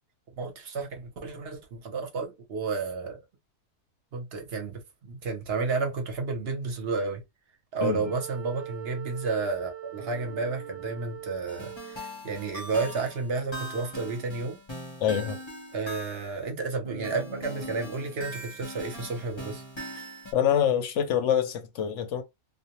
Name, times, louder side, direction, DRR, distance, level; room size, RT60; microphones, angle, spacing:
voice 1, 0.4-3.2 4.1-7.2 7.7-14.6 15.7-19.6, right 4 dB, 50° right, 0.8 m, -31 dB
voice 2, 7.8-8.1 15.0-15.4 20.3-22.2, left 9 dB, 65° left, 0.8 m, -25 dB
Wind instrument woodwind instrument, 8.0-12.2, right 13 dB, 90° right, 1.1 m, -42 dB
sound 1, 10.0-12.5 16.8-18.6, right 2 dB, 65° right, 0.3 m, -46 dB
sound 2, 11.5-16.5 17.0-20.3, equal, 30° left, 0.5 m, -41 dB
2.5 x 2.1 x 2.9 m
omnidirectional pair, 1.6 m